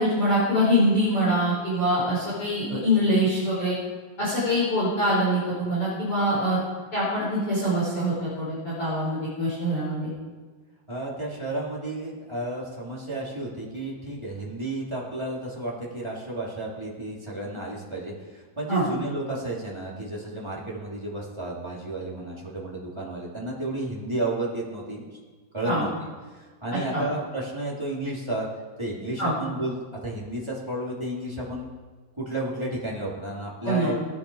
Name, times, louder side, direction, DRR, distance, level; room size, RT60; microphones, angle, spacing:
voice 1, 0.0-3.7 4.2-6.6 6.9-10.1 18.7-18.8 25.6-25.8 26.7-27.0 29.2-29.3 33.6-33.9, equal, 30° left, -8 dB, 5.6 m, -24 dB
voice 2, 10.9-25.2 25.5-25.9 26.3-28.5 28.8-29.8 30.0-31.7 32.2-34.0, right 1 dB, 5° right, -6 dB, 2.7 m, -32 dB
18.5 x 15.0 x 5.0 m, 1.4 s
omnidirectional pair, 5.0 m